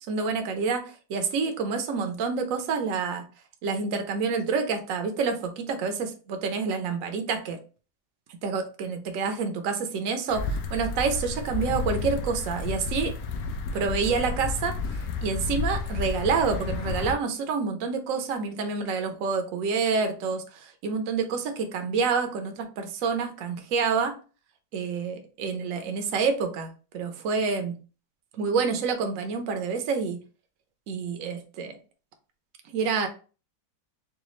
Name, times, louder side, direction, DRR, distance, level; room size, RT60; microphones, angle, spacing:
voice 1, 0.1-3.2 3.6-7.6 8.4-13.1 13.7-14.8 15.2-24.1 24.7-27.8 28.4-30.2 30.9-31.7 32.7-33.1, right 5 dB, 60° right, 6 dB, 1.0 m, -28 dB
sound 1, 10.3-17.1, left 4 dB, 85° left, 1.2 m, -31 dB
4.9 x 2.3 x 3.1 m, 0.35 s
omnidirectional pair, 1.8 m